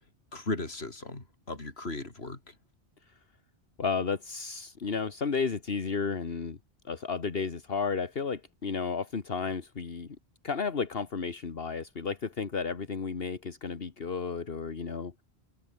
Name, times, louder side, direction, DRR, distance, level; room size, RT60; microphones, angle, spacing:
voice 1, 0.3-2.5, left 2 dB, 85° left, 3.8 m, -37 dB
voice 2, 3.8-6.6 6.8-10.2 10.4-15.2, left 5 dB, 70° left, 1.8 m, -33 dB
open air
omnidirectional pair, 1.0 m